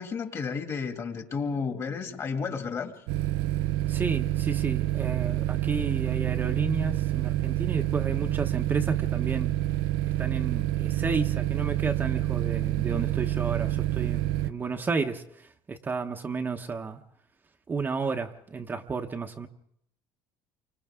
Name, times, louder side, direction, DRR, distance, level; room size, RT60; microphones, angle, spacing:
voice 1, 0.0-2.9, left 5 dB, 35° left, 5 dB, 2.5 m, -32 dB
sound 1, 3.1-14.5, right 14 dB, 80° right, 0.7 m, -27 dB
voice 2, 3.9-9.5 10.2-17.0 17.7-19.5, right 4 dB, 25° right, 4 dB, 1.1 m, -32 dB
29.5 x 25.0 x 3.7 m, 0.72 s
cardioid pair, 125°, 8 cm